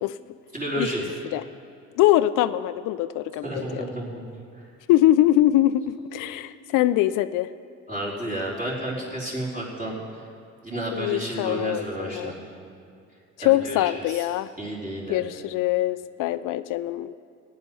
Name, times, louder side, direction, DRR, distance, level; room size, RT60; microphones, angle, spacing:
voice 1, 0.5-1.0 3.4-4.2 7.9-10.2 10.6-12.3 13.4-14.3 14.6-15.2, right 1 dB, 25° right, -5 dB, 4.1 m, -31 dB
voice 2, 2.0-3.8 4.9-7.5 10.9-12.3 13.4-14.5 15.1-17.1, left 14 dB, 75° left, 13 dB, 0.5 m, -23 dB
15.5 x 10.0 x 5.5 m, 2.4 s
cardioid pair, 100°, 32 cm